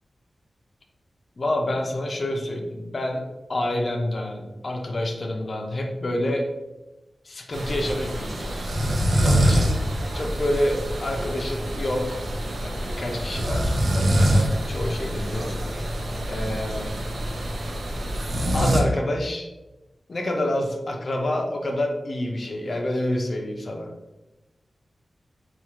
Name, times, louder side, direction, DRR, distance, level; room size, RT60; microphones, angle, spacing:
voice 1, 1.4-6.5 7.2-8.7 9.2-9.8 10.1-12.2 12.6-16.0 16.3-16.9 18.5-19.5 20.1-23.9, left 1 dB, 50° left, 2 dB, 0.6 m, -28 dB
sound 1, 7.5-18.8, equal, 75° right, 0.6 m, -25 dB
4.7 x 2.4 x 2.9 m, 1.0 s
wide cardioid pair, 115°, 0 cm